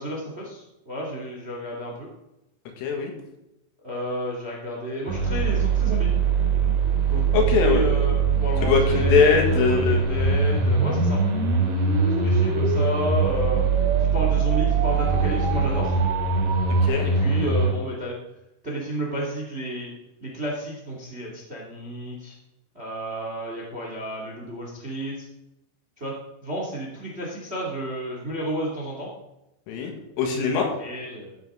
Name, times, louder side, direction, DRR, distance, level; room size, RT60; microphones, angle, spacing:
voice 1, 0.0-2.1 3.8-6.1 7.1-7.2 7.6-11.2 12.1-13.6 14.0-16.0 17.0-18.2 18.6-19.9 20.2-22.4 22.7-25.3 26.0-26.1 26.4-29.1 30.5-31.4, right 1 dB, 25° right, -2 dB, 1.3 m, -31 dB
voice 2, 2.8-3.1 7.3-7.8 8.6-10.0 16.8-17.1 29.7-30.7, left 5 dB, 90° left, 2 dB, 4.5 m, -22 dB
sound 1, 5.1-17.7, right 4 dB, 60° right, 4.1 m, -22 dB
sound 2, 10.0-16.9, right 7 dB, 80° right, 3.6 m, -30 dB
15.0 x 9.7 x 3.9 m, 0.90 s
omnidirectional pair, 5.7 m